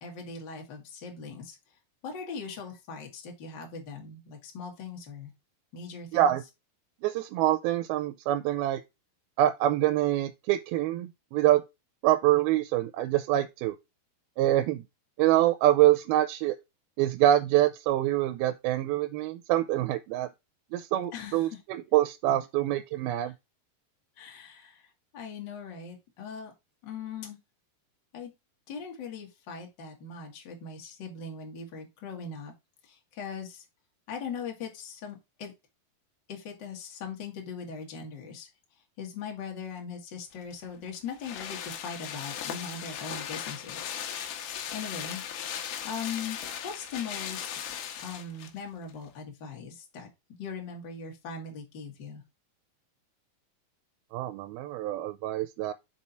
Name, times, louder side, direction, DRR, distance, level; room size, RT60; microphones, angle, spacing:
voice 1, 0.0-1.6 2.0-5.3 5.7-6.4 21.1-21.6 24.2-26.5 26.8-27.4 28.1-28.3 28.7-32.5 32.8-33.6 34.1-35.5 36.3-38.5 39.0-45.2 45.6-46.4 46.6-47.5 48.0-50.1 50.4-52.2, left 5 dB, 40° left, 1.8 m, -40 dB
voice 2, 6.1-6.4 7.0-8.8 9.4-11.6 12.0-13.7 14.4-14.8 15.2-16.6 17.0-20.3 20.7-23.3 54.1-55.7, right 13 dB, 80° right, 2.4 m, -25 dB
sound 1, 40.4-48.6 48.9-49.0, left 9 dB, 80° left, 2.9 m, -37 dB
5.5 x 5.0 x 4.3 m
omnidirectional pair, 4.5 m